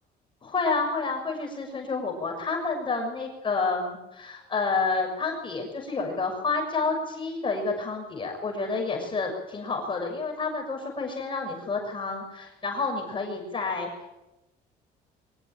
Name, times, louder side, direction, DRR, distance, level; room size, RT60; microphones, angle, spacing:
voice 1, 0.4-13.9, left 4 dB, 30° left, 1 dB, 6.5 m, -29 dB
24.0 x 20.0 x 9.2 m, 0.97 s
cardioid pair, 110°, 17 cm